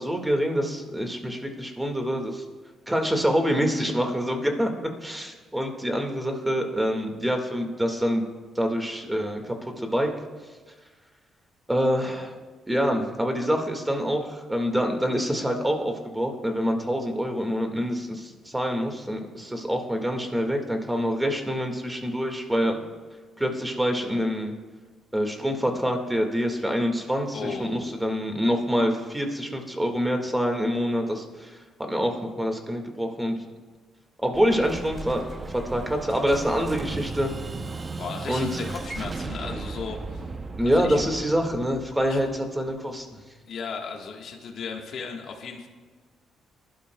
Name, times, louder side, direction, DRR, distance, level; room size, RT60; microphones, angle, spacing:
voice 1, 0.0-2.4 2.9-8.2 8.6-10.1 11.7-12.4 12.7-22.8 23.4-24.5 25.1-31.5 31.9-33.3 34.2-35.2 35.5-37.3 38.3-38.7 40.6-43.1, equal, 10° right, 4 dB, 1.8 m, -26 dB
voice 2, 27.3-28.0 38.0-40.3 40.7-41.0 42.1-42.2 43.5-45.7, left 5 dB, 65° left, 1 dB, 1.4 m, -36 dB
Explosion, 34.3-43.0, right 3 dB, 30° right, 0.6 m, -36 dB
23.0 x 11.5 x 2.3 m, 1.4 s
cardioid pair, 90°, 0 cm